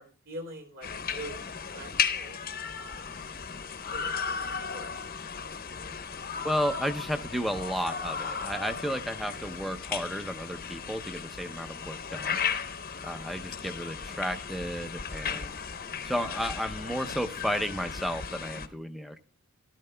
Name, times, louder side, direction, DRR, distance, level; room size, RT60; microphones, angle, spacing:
voice 1, 0.0-1.4 1.7-2.4 2.8-3.2 3.9-4.9, equal, 55° right, 3 dB, 3.4 m, -44 dB
sound 1, 0.8-18.7, left 6 dB, 40° left, 0.8 m, -35 dB
voice 2, 6.4-12.4 13.0-15.6 16.0-19.2, equal, ahead, 8 dB, 0.6 m, -33 dB
14.0 x 12.5 x 2.2 m, 0.39 s
head